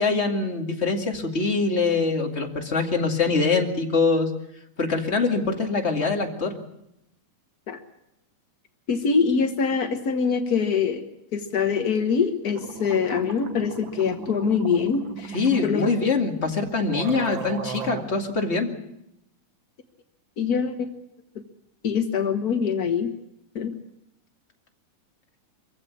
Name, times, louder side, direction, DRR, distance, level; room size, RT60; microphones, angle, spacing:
voice 1, 0.0-4.3 4.8-6.6 15.3-18.7, left 4 dB, 25° left, 3 dB, 2.1 m, -24 dB
voice 2, 8.9-11.0 11.3-15.9 20.4-20.9 21.8-23.1 23.5-23.7, left 6 dB, 70° left, 6 dB, 0.8 m, -24 dB
sound 1, 12.2-12.3 12.5-15.7 16.4-16.5 16.9-18.0, right 6 dB, 45° right, 1.8 m, -35 dB
25.0 x 15.5 x 8.5 m, 0.82 s
omnidirectional pair, 3.7 m